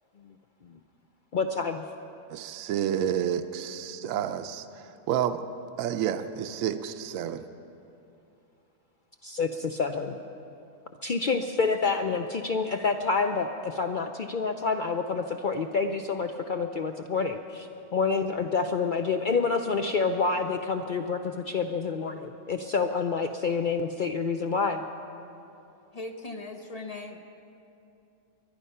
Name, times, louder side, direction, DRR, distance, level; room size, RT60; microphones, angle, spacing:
voice 1, 1.3-1.8 4.0-4.1 9.2-10.2 11.0-24.8, left 4 dB, 75° left, 6 dB, 0.4 m, -28 dB
voice 2, 2.3-5.4 5.8-7.4, right 9 dB, 70° right, 9 dB, 1.0 m, -30 dB
voice 3, 25.9-27.2, left 2 dB, 35° left, 5 dB, 0.6 m, -39 dB
22.5 x 11.0 x 5.6 m, 2.7 s
omnidirectional pair, 1.5 m